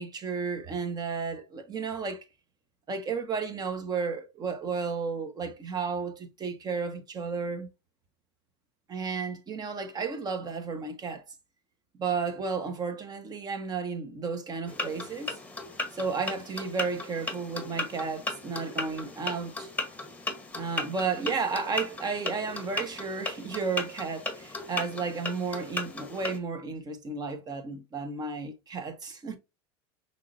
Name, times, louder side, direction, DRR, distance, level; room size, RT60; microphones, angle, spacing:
voice 1, 0.0-2.2 2.9-7.7 8.9-11.2 12.0-15.4 15.9-19.7 20.5-29.4, right 5 dB, 30° right, 1.2 m, -33 dB
sound 1, 14.7-26.4, left 2 dB, 10° left, 1.2 m, -36 dB
5.7 x 3.2 x 2.6 m
hypercardioid pair, 100°, 14 cm